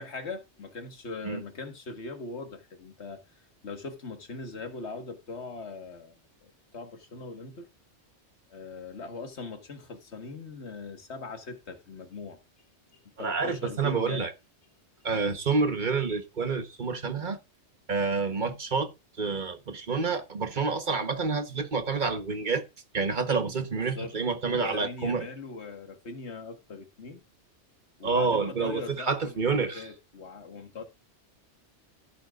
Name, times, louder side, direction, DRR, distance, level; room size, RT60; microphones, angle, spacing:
voice 1, 0.0-3.2 3.6-7.7 8.5-12.4 13.1-14.2 20.5-20.7 23.7-24.1 24.5-27.2 28.0-30.8, left 3 dB, 70° left, 1.9 m, -40 dB
voice 2, 13.2-14.3 15.0-17.4 17.9-18.9 19.2-22.6 22.9-25.3 28.0-29.8, right 4 dB, 45° right, 1.3 m, -28 dB
15.0 x 8.9 x 2.5 m
omnidirectional pair, 1.2 m